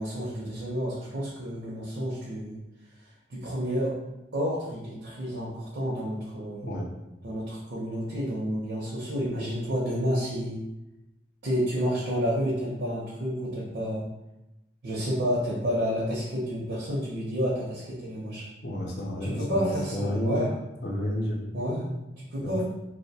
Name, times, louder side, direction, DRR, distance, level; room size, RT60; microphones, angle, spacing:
voice 1, 0.0-2.6 3.3-3.9 4.3-6.7 7.2-10.6 11.4-14.0 14.8-18.5 19.2-20.5 21.5-22.6, equal, 75° right, -6 dB, 0.6 m, -30 dB
voice 2, 18.6-20.5 20.8-21.4 22.4-22.6, equal, 70° left, -2 dB, 0.5 m, -30 dB
2.6 x 2.1 x 2.7 m, 0.94 s
head